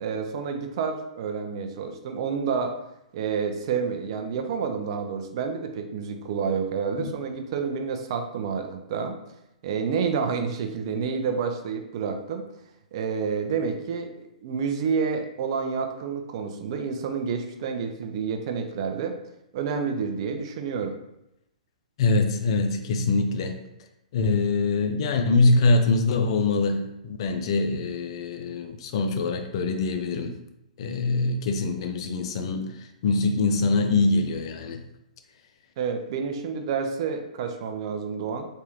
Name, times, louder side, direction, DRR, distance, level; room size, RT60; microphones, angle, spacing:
voice 1, 0.0-2.7 3.1-9.1 9.6-12.4 12.9-14.1 14.4-19.1 19.5-21.0 35.8-38.5, right 6 dB, 45° right, 5 dB, 0.5 m, -29 dB
voice 2, 22.0-23.6 24.1-30.3 30.8-34.8, left 3 dB, 50° left, 6 dB, 0.5 m, -24 dB
3.4 x 3.3 x 2.9 m, 0.85 s
figure-of-eight pair, 110°, 4 cm